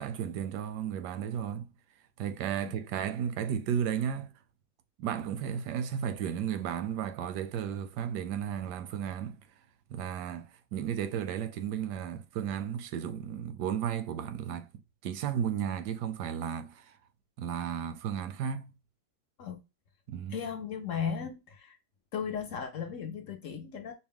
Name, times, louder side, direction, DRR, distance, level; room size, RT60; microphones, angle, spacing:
voice 1, 0.0-1.7 2.2-4.3 5.0-9.4 9.9-14.7 15.0-16.9 17.4-18.7 20.1-20.4, right 8 dB, 85° right, 1.2 m, -34 dB
voice 2, 20.3-21.8 22.1-23.9, left 7 dB, 65° left, 0.8 m, -36 dB
4.7 x 2.1 x 3.5 m
omnidirectional pair, 1.7 m